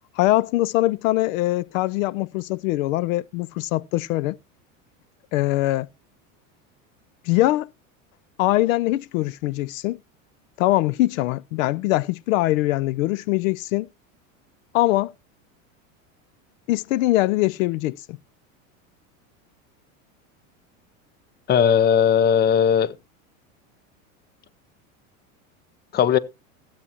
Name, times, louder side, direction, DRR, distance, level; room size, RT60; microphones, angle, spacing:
voice 1, 0.2-4.4 5.3-5.9 7.2-7.7 8.4-10.0 10.6-13.9 14.7-15.1 16.7-18.2, left 17 dB, 75° left, 0.5 m, -22 dB
voice 2, 21.5-22.9 25.9-26.2, left 8 dB, 25° left, 0.6 m, -18 dB
14.5 x 8.7 x 2.9 m
supercardioid pair, 110°, 40 cm